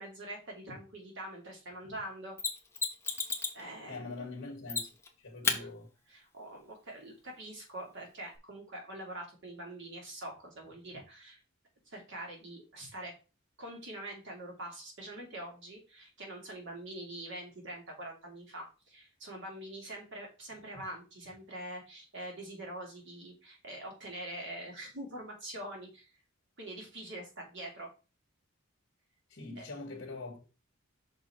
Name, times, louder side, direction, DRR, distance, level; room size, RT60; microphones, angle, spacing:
voice 1, 0.0-2.4 3.5-4.3 5.4-5.7 6.1-11.4 11.9-13.1 13.6-26.1 26.6-27.9 29.6-29.7, right 1 dB, 65° right, 2.6 m, -44 dB
Mechanisms, 2.4-3.6 4.7-5.1 5.4-5.6 8.3-8.4, left 4 dB, 15° left, 1.0 m, -32 dB
voice 2, 3.9-4.9 5.2-5.9 29.3-30.4, left 3 dB, 60° left, 1.5 m, -43 dB
6.0 x 4.1 x 4.3 m
head